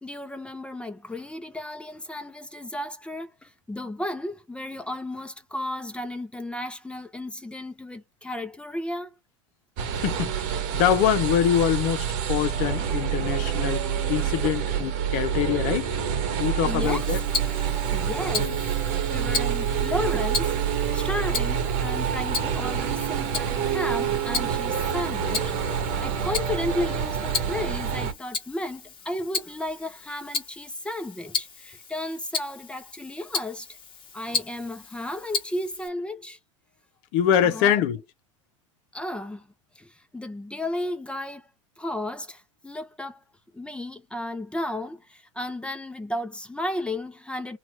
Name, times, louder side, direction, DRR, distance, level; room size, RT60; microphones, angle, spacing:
voice 1, 0.0-9.1 14.8-14.9 16.4-17.1 17.9-18.6 19.1-33.7 34.1-36.4 37.4-37.9 38.9-39.5 39.8-41.5 41.8-43.2 43.5-47.6, left 1 dB, 5° left, 0.7 m, -34 dB
sound 1, 9.8-28.1, right 8 dB, 50° right, 1.0 m, -27 dB
voice 2, 10.0-13.8 14.1-15.9 16.4-17.2 18.4-18.6 37.1-38.0, left 10 dB, 55° left, 0.9 m, -24 dB
Tick-tock, 16.8-35.9, left 4 dB, 30° left, 1.3 m, -35 dB
2.7 x 2.5 x 3.2 m
hypercardioid pair, 85°, 16 cm